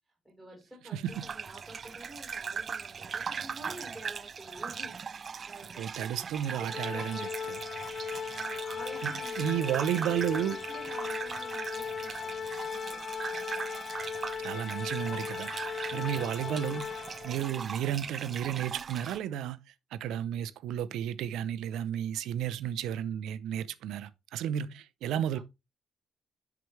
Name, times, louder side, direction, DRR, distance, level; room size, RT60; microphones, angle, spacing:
voice 1, 0.2-5.0 5.5-7.3 8.3-13.0 25.2-25.4, right 1 dB, 10° right, 4.0 m, -49 dB
sound 1, 1.1-19.2, right 6 dB, 45° right, 0.3 m, -40 dB
voice 2, 5.8-7.6 9.0-10.6 14.4-15.5 15.9-25.4, right 10 dB, 85° right, 0.6 m, -33 dB
Organ, 6.7-17.6, left 6 dB, 45° left, 0.5 m, -38 dB
11.0 x 4.7 x 3.2 m
cardioid pair, 90°, 0 cm